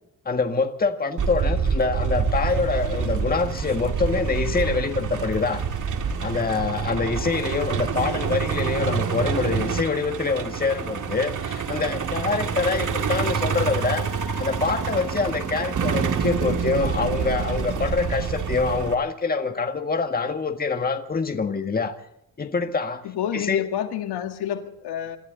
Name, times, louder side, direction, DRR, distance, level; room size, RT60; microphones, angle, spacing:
voice 1, 0.3-5.6 6.2-14.0 14.4-21.9 22.4-23.0 23.3-23.6, left 4 dB, 25° left, 6 dB, 1.7 m, -25 dB
Truck, 1.2-18.9, right 6 dB, 50° right, 2.2 m, -27 dB
voice 2, 23.0-25.2, left 10 dB, 90° left, 6 dB, 2.1 m, -29 dB
26.5 x 13.5 x 3.9 m, 0.80 s
cardioid pair, 115°, 39 cm